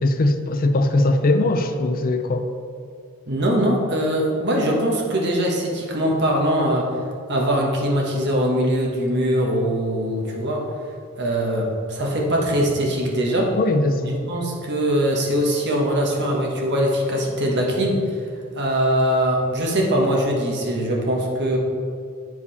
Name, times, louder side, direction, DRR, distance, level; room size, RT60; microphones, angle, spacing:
voice 1, 0.0-2.5 13.5-14.1, left 2 dB, 40° left, 8 dB, 0.5 m, -20 dB
voice 2, 3.3-6.9 7.3-10.7 11.2-13.5 14.0-18.0 18.5-21.6, equal, 55° right, -1 dB, 1.4 m, -22 dB
8.5 x 4.8 x 5.6 m, 2.3 s
head